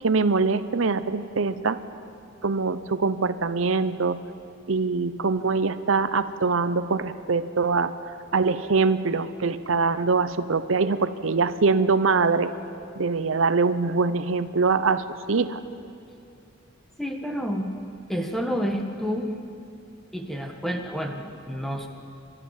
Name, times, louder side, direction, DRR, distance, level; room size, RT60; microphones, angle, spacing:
voice 1, 0.0-1.8 2.4-4.2 4.7-7.9 8.3-12.5 13.0-15.6, right 4 dB, 90° right, 12 dB, 0.8 m, -23 dB
voice 2, 17.0-17.7 18.1-19.3 20.1-21.9, equal, ahead, 3 dB, 1.5 m, -29 dB
29.5 x 13.0 x 7.4 m, 2.5 s
head